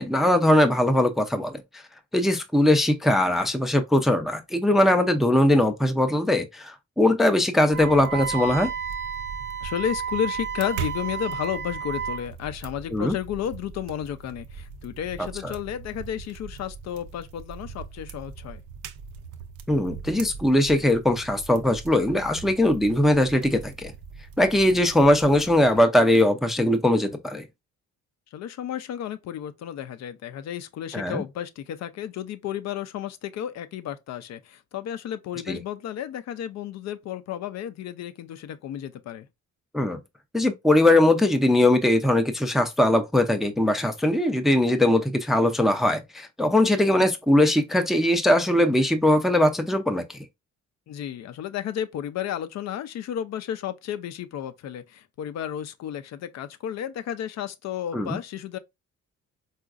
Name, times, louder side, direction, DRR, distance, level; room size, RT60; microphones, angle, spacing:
voice 1, 0.0-1.6 2.1-8.7 12.9-13.1 15.4-15.5 19.7-23.9 24.4-27.5 30.9-31.2 35.5-35.6 39.7-40.0 40.3-50.0 57.9-58.2, left 1 dB, ahead, 0.4 m, -21 dB
Wind instrument woodwind instrument, 7.7-12.3, right 7 dB, 40° right, 0.6 m, -32 dB
sound 1, 7.7-25.8, right 6 dB, 85° right, 0.5 m, -41 dB
voice 2, 9.6-18.6 28.3-39.3 50.9-58.6, left 10 dB, 60° left, 0.4 m, -32 dB
3.8 x 2.4 x 2.4 m
cardioid pair, 90°, 30 cm